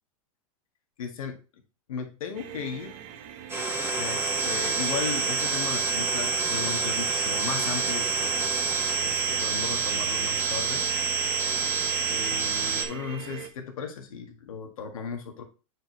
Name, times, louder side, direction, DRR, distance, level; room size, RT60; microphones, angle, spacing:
voice 1, 1.0-1.4 1.9-3.0 4.0-10.8 12.0-15.4, left 6 dB, 85° left, 4 dB, 1.8 m, -36 dB
sound 1, 2.3-13.5, right 9 dB, 45° right, 1.0 m, -43 dB
sound 2, 3.5-12.9, right 4 dB, 15° right, 1.5 m, -27 dB
7.6 x 4.8 x 3.1 m, 0.32 s
hypercardioid pair, 120°, 17 cm